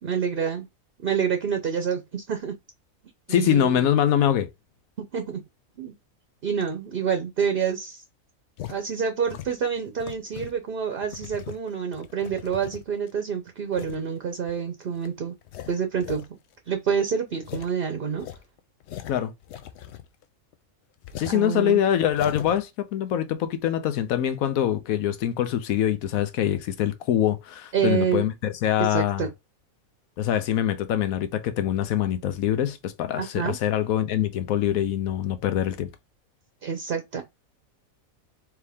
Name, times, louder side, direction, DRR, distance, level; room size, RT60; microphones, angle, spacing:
voice 1, 0.0-0.7 1.0-2.6 3.3-3.9 5.1-5.4 5.8-6.0 6.4-8.0 8.7-15.3 15.7-16.2 16.7-18.3 21.3-21.8 27.7-28.2 28.9-29.3 33.2-33.5 36.6-37.2, right 7 dB, 50° right, 0.8 m, -27 dB
voice 2, 3.3-4.5 19.1-19.3 21.2-29.3 30.2-35.9, left 10 dB, 90° left, 1.1 m, -24 dB
sound 1, 8.6-8.8 9.3-10.6 11.0-13.1 13.7-14.0 14.5-14.6 15.0-15.1 15.4-16.3 16.5-16.6 16.9-17.0 17.4-17.7 18.2-20.2 20.5-20.6 21.0-21.4 22.0-22.6, left 11 dB, 65° left, 0.7 m, -39 dB
4.6 x 2.8 x 3.5 m
omnidirectional pair, 1.5 m